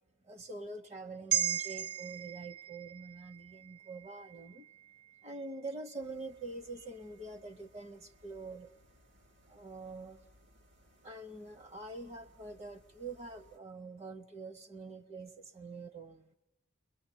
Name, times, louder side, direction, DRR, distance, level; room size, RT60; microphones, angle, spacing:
voice 1, 0.2-4.7 5.2-8.7 9.5-10.2 11.0-16.4, right 3 dB, 35° right, 9 dB, 0.9 m, -45 dB
sound 1, 1.3-5.8 6.2-6.3, right 11 dB, 50° right, 1.2 m, -38 dB
sound 2, 6.0-13.6, equal, 85° right, 2.7 m, -65 dB
30.0 x 21.5 x 9.0 m, 0.98 s
head